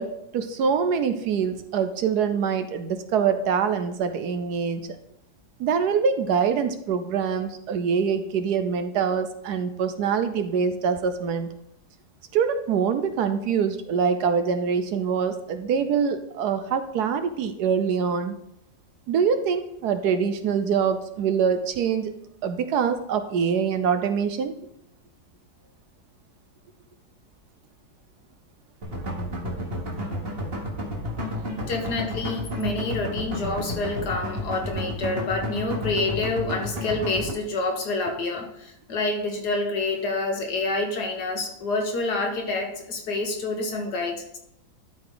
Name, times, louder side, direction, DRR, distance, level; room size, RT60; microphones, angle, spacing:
voice 1, 0.0-4.8 5.6-11.5 12.3-18.3 19.1-22.1 22.4-24.5, right 6 dB, 70° right, 9 dB, 1.1 m, -24 dB
sound 1, 28.8-37.3, left 1 dB, 35° right, 1.7 m, -31 dB
voice 2, 31.7-44.4, left 3 dB, 65° left, 3 dB, 1.8 m, -28 dB
12.0 x 4.8 x 3.8 m, 0.79 s
omnidirectional pair, 1.9 m